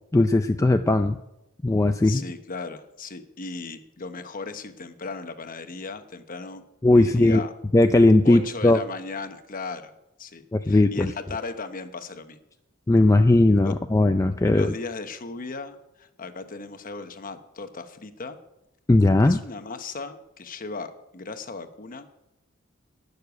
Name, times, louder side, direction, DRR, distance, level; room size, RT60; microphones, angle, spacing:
voice 1, 0.1-1.2 1.6-2.2 6.8-7.4 7.7-8.8 10.5-11.1 12.9-14.7 18.9-19.4, left 2 dB, 15° left, 7 dB, 0.4 m, -18 dB
voice 2, 2.0-6.6 6.9-7.5 8.2-9.9 10.2-12.4 13.6-13.7 14.4-18.4 19.2-22.2, left 3 dB, 45° left, 9 dB, 1.0 m, -36 dB
12.0 x 6.7 x 9.4 m, 0.88 s
head